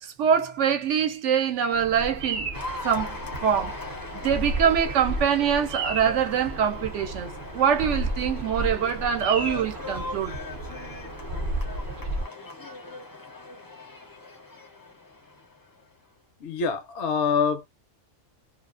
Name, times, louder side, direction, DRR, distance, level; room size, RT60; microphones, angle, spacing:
voice 1, 0.0-2.5 2.8-3.8 4.1-10.3, right 8 dB, 75° right, 0.9 m, -24 dB
Bird vocalization bird call bird song, 1.7-12.2, right 2 dB, 50° right, 0.6 m, -33 dB
Cheering / Applause, 2.5-15.9, left 3 dB, 30° left, 0.4 m, -40 dB
voice 2, 16.4-17.7, left 5 dB, 70° left, 0.9 m, -25 dB
2.4 x 2.4 x 2.4 m
omnidirectional pair, 1.3 m